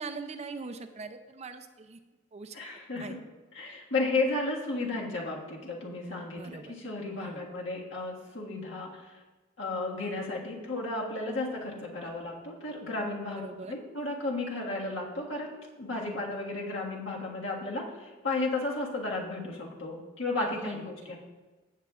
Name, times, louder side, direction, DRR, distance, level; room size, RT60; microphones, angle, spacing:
voice 1, 0.0-2.0 2.3-2.6 2.9-3.2 6.3-6.7 7.1-7.4 13.4-13.7 16.0-16.2 20.4-21.1, right 4 dB, 35° right, 9 dB, 0.4 m, -42 dB
voice 2, 2.5-3.2 3.5-9.1 9.6-21.2, left 2 dB, 70° left, -2 dB, 1.7 m, -33 dB
15.5 x 7.1 x 2.4 m, 1.2 s
head